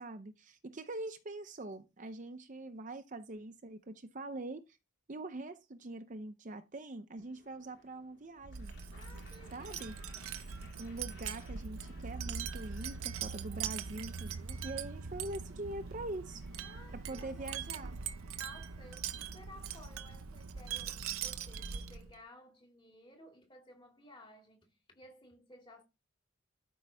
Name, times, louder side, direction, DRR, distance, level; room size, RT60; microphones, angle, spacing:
voice 1, 0.0-4.8 5.1-8.7 9.5-10.0 10.8-16.4 16.9-18.0, right 2 dB, 35° right, 0.6 m, -44 dB
sound 1, 7.1-19.0, left 4 dB, 50° left, 2.6 m, -63 dB
Wind chime, 8.4-22.2, right 6 dB, 75° right, 0.7 m, -42 dB
voice 2, 8.9-10.6 16.6-17.8 18.4-25.8, left 1 dB, 20° left, 2.3 m, -57 dB
12.5 x 5.3 x 3.4 m
head